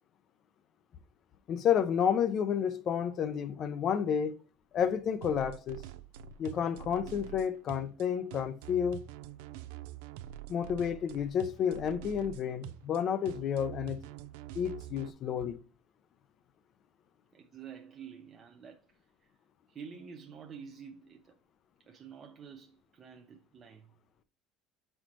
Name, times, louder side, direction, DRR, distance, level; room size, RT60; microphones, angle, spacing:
voice 1, 1.5-4.4 4.7-5.8 6.4-9.1 10.5-14.0 14.5-15.6, left 8 dB, 40° left, 0.5 m, -30 dB
sound 1, 5.2-15.1, right 12 dB, 85° right, 0.4 m, -45 dB
voice 2, 17.3-19.3 19.7-21.3 21.9-23.9, right 6 dB, 30° right, 0.6 m, -49 dB
7.7 x 4.3 x 3.0 m
cardioid pair, 135°, 0 cm